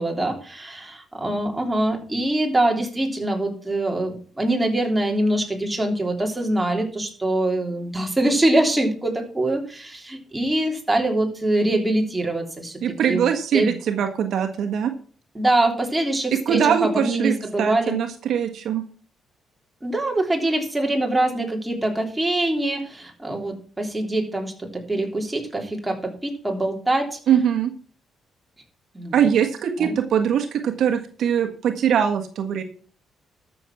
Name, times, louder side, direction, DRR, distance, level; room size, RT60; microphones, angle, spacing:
voice 1, 0.0-12.8 13.1-13.2 13.5-13.7 15.3-18.0 19.8-27.2 28.9-29.3 29.8-29.9, right 1 dB, 10° right, 1 dB, 3.4 m, -24 dB
voice 2, 12.8-14.9 16.4-18.8 27.3-27.7 29.1-32.6, right 8 dB, 70° right, 6 dB, 1.5 m, -22 dB
12.5 x 7.0 x 6.0 m, 0.43 s
cardioid pair, 90°, 0 cm